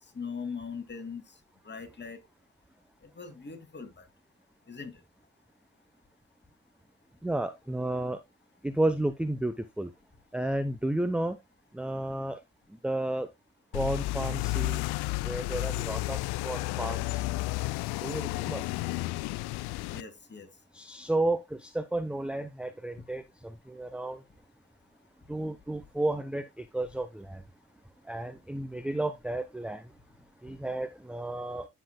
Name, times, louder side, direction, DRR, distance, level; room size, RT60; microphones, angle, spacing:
voice 1, 0.1-1.3 1.6-2.2 3.0-4.0 4.7-4.9 19.9-20.5, left 5 dB, 25° left, 2.5 m, -41 dB
voice 2, 7.2-8.2 8.6-9.9 10.3-11.4 11.7-12.4 12.8-13.3 13.7-14.8 15.2-16.2 16.4-17.3 18.0-18.6 20.7-24.2 25.3-27.4 28.1-29.8 30.4-31.7, right 1 dB, 5° right, 0.7 m, -32 dB
sound 1, 13.7-20.0, left 20 dB, 75° left, 0.5 m, -32 dB
9.9 x 7.7 x 2.2 m
supercardioid pair, 65°, 39 cm